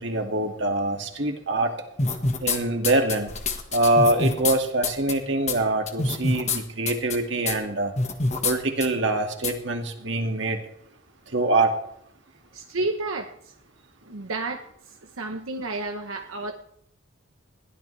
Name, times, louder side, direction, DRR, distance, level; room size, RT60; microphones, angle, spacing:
voice 1, 0.0-1.7 2.4-3.3 3.7-7.9 8.4-10.6 11.3-11.8, right 2 dB, 60° right, 3 dB, 2.2 m, -24 dB
sound 1, 2.0-2.6 2.8-4.5 4.8-5.1 5.5-5.6 5.9-6.6 6.9-7.2 7.5-7.6 8.0-8.5 8.8-8.9 9.4-9.5, left 3 dB, 35° left, 1.6 m, -25 dB
voice 2, 12.5-13.5 14.1-14.7 15.2-16.5, right 2 dB, 80° right, 4 dB, 1.1 m, -31 dB
21.5 x 15.5 x 3.4 m, 0.72 s
head